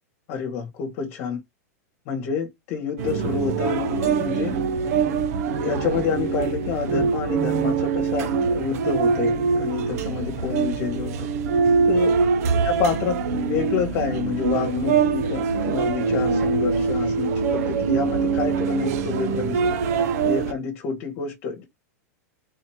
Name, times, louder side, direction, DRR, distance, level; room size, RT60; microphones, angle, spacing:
voice 1, 0.3-1.4 2.1-4.6 5.6-11.3 11.8-12.2 12.6-19.8 20.2-21.6, left 6 dB, 50° left, 1.2 m, -28 dB
sound 1, 3.0-20.5, right 5 dB, 65° right, 0.8 m, -23 dB
4.1 x 2.8 x 3.1 m
hypercardioid pair, 120°, 9 cm